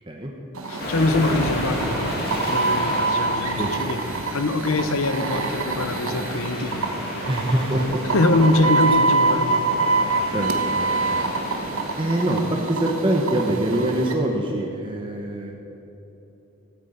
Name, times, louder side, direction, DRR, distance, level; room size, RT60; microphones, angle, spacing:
sound 1, 0.5-14.1, right 3 dB, 70° right, 1.2 m, -25 dB
voice 1, 0.6-6.9 8.1-9.6, left 2 dB, 70° left, 9 dB, 0.9 m, -23 dB
sound 2, 0.8-13.4, left 1 dB, 45° left, 2.4 m, -33 dB
voice 2, 7.3-8.0 10.3-11.2 12.0-15.5, right 1 dB, 20° right, 0 dB, 1.0 m, -24 dB
14.0 x 9.2 x 8.0 m, 3.0 s
head